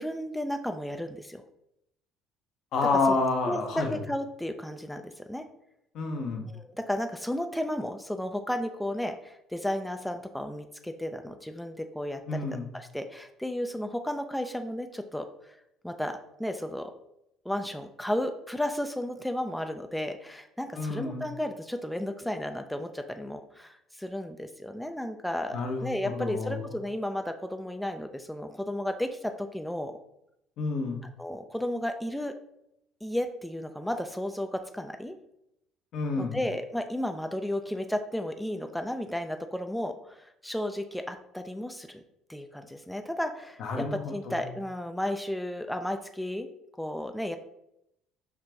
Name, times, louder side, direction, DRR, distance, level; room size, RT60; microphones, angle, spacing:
voice 1, 0.0-1.4 3.1-3.2 3.4-5.5 6.4-12.4 12.7-16.9 17.5-30.0 31.2-32.3 33.0-35.2 36.2-42.0 42.3-46.5 46.8-47.4, left 1 dB, 5° left, 6 dB, 0.3 m, -33 dB
voice 2, 2.7-4.0 5.9-6.4 12.3-12.7 20.7-21.2 25.5-26.6 30.6-31.0 35.9-36.4 43.6-44.4, left 3 dB, 60° left, 3 dB, 0.7 m, -29 dB
4.7 x 2.4 x 3.3 m, 0.82 s
hypercardioid pair, 60°, 0 cm